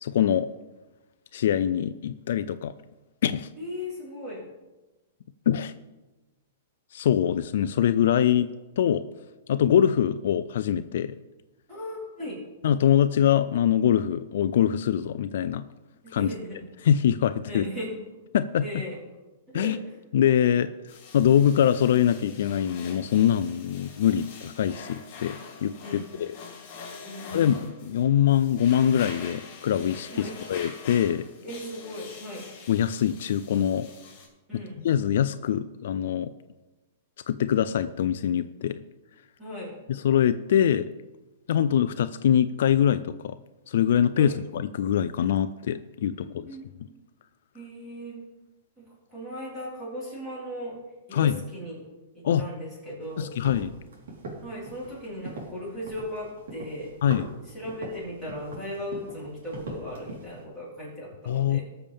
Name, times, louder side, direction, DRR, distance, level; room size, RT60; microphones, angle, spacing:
voice 1, 0.0-0.5 1.3-2.7 3.2-3.5 5.5-5.7 6.9-8.5 8.8-9.0 9.5-11.2 12.6-15.6 16.1-16.3 16.8-17.7 18.3-18.8 19.5-19.8 20.1-20.7 21.1-26.4 27.3-31.3 32.7-33.9 34.5-36.3 37.3-38.8 39.9-40.8 41.5-43.4 43.7-46.3 51.1-51.4 52.2-52.4 53.2-53.7 57.0-57.3 61.3-61.6, left 9 dB, 55° left, 12 dB, 0.4 m, -23 dB
voice 2, 3.6-4.4 11.7-12.4 16.1-16.6 17.4-17.9 18.6-19.0 19.5-19.7 23.7-23.8 25.8-26.1 27.0-27.4 30.1-30.3 31.4-32.5 34.5-34.7 39.4-39.7 44.1-44.4 46.2-46.9 47.5-48.2 48.8-50.8 51.1-51.8 52.1-53.3 54.4-56.9 57.5-61.6, equal, 10° right, -9 dB, 4.4 m, -37 dB
sound 1, 20.9-34.3, left 5 dB, 35° left, 3.0 m, -45 dB
sound 2, 53.0-60.4, right 2 dB, 70° right, 3.8 m, -42 dB
19.5 x 6.9 x 3.6 m, 1.1 s
supercardioid pair, 180°, 0 cm